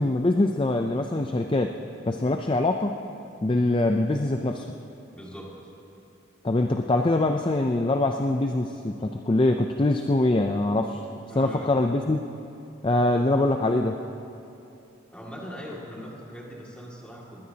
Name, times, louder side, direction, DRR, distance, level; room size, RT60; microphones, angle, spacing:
voice 1, 0.0-1.7 2.1-3.0 3.4-4.7 6.4-11.0 11.4-12.2 12.8-14.0, left 2 dB, 25° left, 5 dB, 0.4 m, -23 dB
voice 2, 5.2-5.6 11.3-11.7 15.1-17.4, equal, 5° left, -4 dB, 2.2 m, -40 dB
20.0 x 20.0 x 2.9 m, 2.7 s
head